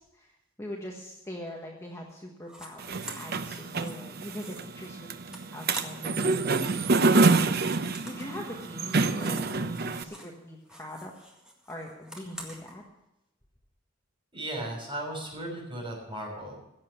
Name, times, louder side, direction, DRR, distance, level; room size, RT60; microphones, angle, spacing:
voice 1, 0.0-7.1 7.5-11.3 11.7-12.8, left 1 dB, 15° left, -1 dB, 1.3 m, -42 dB
sound 1, 2.4-2.7 3.0-6.2 6.5-10.4 10.6-12.7, equal, 5° right, 1.9 m, -47 dB
sound 2, 2.8-10.0, right 3 dB, 50° right, 0.7 m, -27 dB
voice 2, 14.3-16.6, right 1 dB, 25° right, -1 dB, 5.7 m, -36 dB
16.5 x 7.6 x 8.3 m, 0.88 s
head